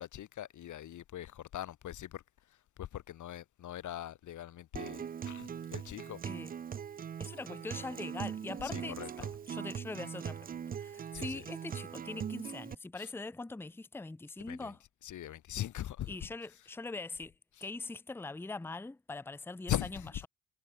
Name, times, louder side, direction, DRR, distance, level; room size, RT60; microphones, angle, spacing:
voice 1, 0.0-2.2 2.8-6.2 8.6-9.3 11.1-11.4 13.0-13.1 14.4-14.7 15.0-16.2 19.7-20.1, left 12 dB, 65° left, 0.9 m, -41 dB
Acoustic guitar, 4.7-12.7, right 8 dB, 30° right, 0.4 m, -41 dB
voice 2, 7.2-8.9 9.5-10.5 10.8-14.8 16.1-17.3 17.6-20.3, left 3 dB, 5° left, 0.6 m, -42 dB
cardioid pair, 75°, 33 cm